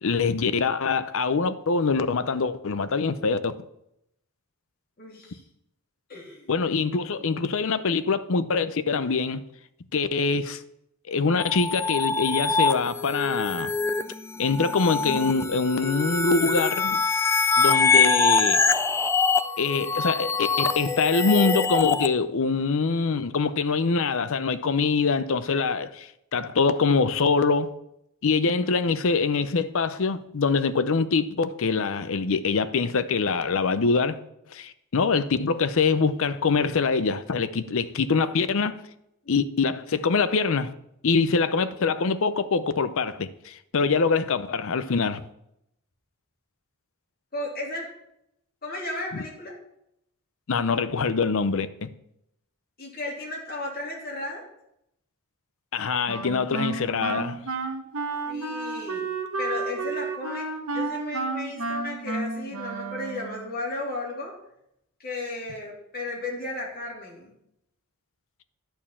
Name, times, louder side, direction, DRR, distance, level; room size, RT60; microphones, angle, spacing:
voice 1, 0.0-3.6 6.5-9.4 9.9-10.6 11.1-13.7 14.4-17.0 17.6-18.6 19.6-27.7 28.2-34.2 34.5-38.8 39.3-40.7 41.0-45.2 49.1-49.2 50.5-51.9 55.7-57.4, left 4 dB, 65° left, 0.6 m, -24 dB
voice 2, 5.0-5.4 6.1-6.5 28.8-28.9 47.3-47.9 48.6-49.5 52.8-54.4 58.3-59.1 59.4-60.5 60.7-64.3 65.0-67.3, left 2 dB, 45° left, 2.9 m, -34 dB
sound 1, 11.4-22.1, left 4 dB, 10° left, 0.3 m, -24 dB
Wind instrument woodwind instrument, 56.1-63.5, right 3 dB, 70° right, 1.0 m, -31 dB
10.5 x 4.5 x 7.3 m
head